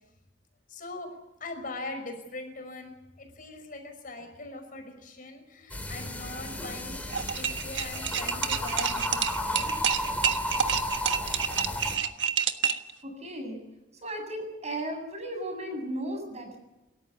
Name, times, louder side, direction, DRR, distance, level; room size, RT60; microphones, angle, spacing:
voice 1, 0.7-1.1 1.4-7.0 7.4-10.2, left 2 dB, 50° left, 5 dB, 5.8 m, -41 dB
sound 1, 5.7-12.0, left 1 dB, 10° left, 3.5 m, -33 dB
sound 2, 7.1-12.9, right 8 dB, 85° right, 1.4 m, -28 dB
voice 2, 13.0-13.6 14.0-16.6, right 1 dB, 40° right, 4 dB, 7.8 m, -35 dB
28.0 x 14.0 x 8.5 m, 1.0 s
head